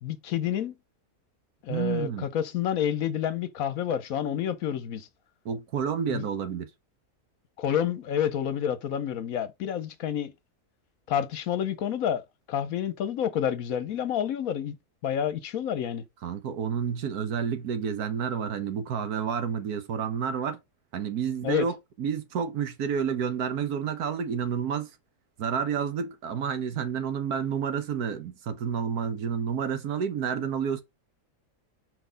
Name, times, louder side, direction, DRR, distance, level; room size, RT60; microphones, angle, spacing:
voice 1, 0.0-0.7 1.6-5.1 6.1-6.3 7.6-10.3 11.1-12.2 12.5-14.8 15.0-16.0 21.4-21.7, left 9 dB, 70° left, 1.1 m, -29 dB
voice 2, 1.7-2.3 5.4-6.7 16.2-20.6 20.9-24.9 25.4-30.8, right 7 dB, 75° right, 1.5 m, -30 dB
4.6 x 4.2 x 5.1 m
omnidirectional pair, 1.6 m